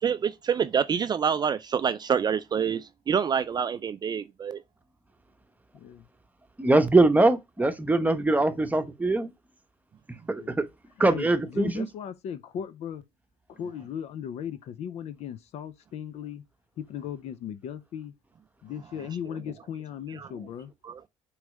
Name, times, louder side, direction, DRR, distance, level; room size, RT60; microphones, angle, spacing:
voice 1, 0.0-4.6 20.1-20.3 20.8-21.0, right 7 dB, 35° right, 0.4 m, -27 dB
voice 2, 5.7-6.1 8.6-8.7 10.4-10.6 11.1-13.0 13.5-16.4 16.8-18.1 18.6-20.7, left 8 dB, 60° left, 0.6 m, -37 dB
voice 3, 6.6-9.3 10.3-10.7 11.0-11.9, right 2 dB, 15° right, 0.9 m, -22 dB
6.0 x 3.2 x 4.9 m
hypercardioid pair, 65°, 12 cm